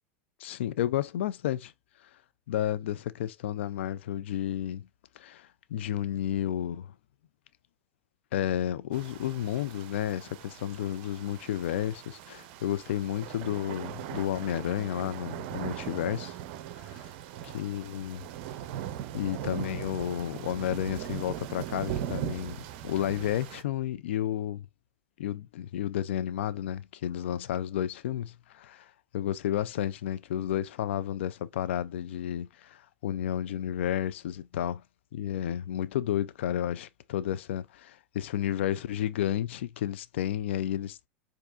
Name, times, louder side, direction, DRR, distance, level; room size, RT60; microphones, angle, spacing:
voice 1, 0.4-1.6 2.5-4.9 5.2-6.9 8.3-16.4 16.8-17.1 17.4-18.2 19.1-24.7 25.2-34.8 35.1-41.0, left 11 dB, 70° left, 0.3 m, -32 dB
sound 1, 8.9-23.6, right 11 dB, 60° right, 0.5 m, -40 dB
4.5 x 2.6 x 2.4 m
hypercardioid pair, 85°, 6 cm